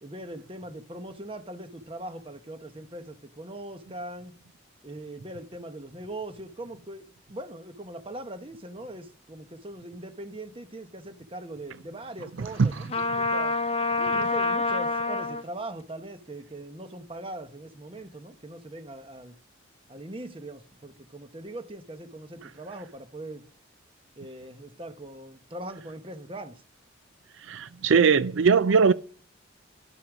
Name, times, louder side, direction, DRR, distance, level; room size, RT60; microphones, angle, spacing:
voice 1, 0.0-4.3 4.8-13.6 14.0-19.4 19.9-23.5 24.2-26.6, right 1 dB, 25° right, 1.0 m, -41 dB
voice 2, 12.4-12.8 27.5-28.9, right 5 dB, 75° right, 0.5 m, -21 dB
Trumpet, 12.9-15.4, left 3 dB, 30° left, 0.8 m, -26 dB
12.0 x 8.4 x 6.1 m
head